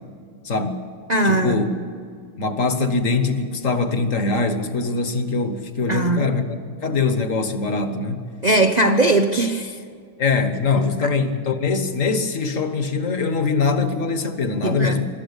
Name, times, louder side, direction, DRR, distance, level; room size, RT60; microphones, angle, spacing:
voice 1, 0.4-0.8 1.2-1.7 2.4-8.3 10.2-15.1, left 4 dB, 45° left, 8 dB, 1.7 m, -22 dB
voice 2, 1.1-1.7 5.9-6.3 8.4-9.8 11.0-11.1 14.6-15.0, right 2 dB, 75° right, 6 dB, 0.4 m, -19 dB
26.0 x 13.0 x 8.3 m, 2.3 s
omnidirectional pair, 2.0 m